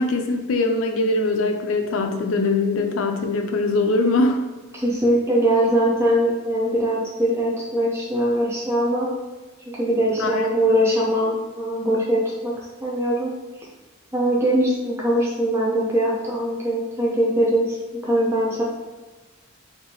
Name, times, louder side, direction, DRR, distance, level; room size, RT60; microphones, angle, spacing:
voice 1, 0.0-4.4 10.2-10.4, left 2 dB, 70° left, 5 dB, 0.4 m, -22 dB
voice 2, 4.7-9.1 9.7-12.5 12.8-13.3 14.1-18.6, right 1 dB, 15° right, -5 dB, 0.6 m, -21 dB
4.5 x 2.7 x 2.8 m, 1.2 s
head